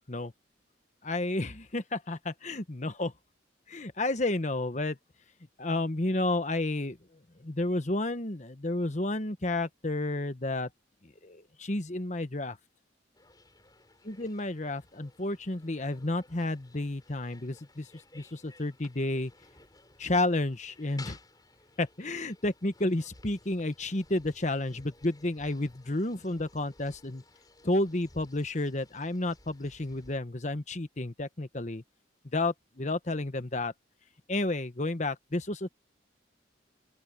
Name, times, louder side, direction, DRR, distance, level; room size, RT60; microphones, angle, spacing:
voice 1, 1.0-3.1 3.7-5.0 5.6-7.0 7.4-10.7 11.0-12.6 14.0-19.3 20.0-21.2 21.8-27.2 27.6-31.8 32.3-33.7 34.3-35.7, left 2 dB, 40° left, 1.2 m, -31 dB
sound 1, 13.1-30.2, left 3 dB, 20° left, 7.0 m, -57 dB
open air
head